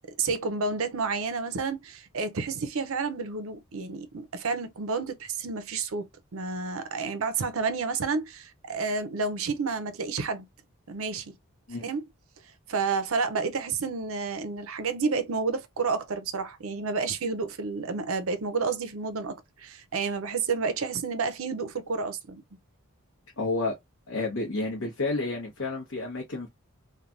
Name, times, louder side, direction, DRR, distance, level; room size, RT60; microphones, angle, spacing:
voice 1, 0.2-10.5 10.9-11.3 11.8-12.1 12.7-22.4, right 4 dB, 75° right, 0.6 m, -30 dB
voice 2, 23.4-23.8 24.1-26.5, left 2 dB, 70° left, 1.0 m, -30 dB
3.2 x 2.2 x 2.4 m
head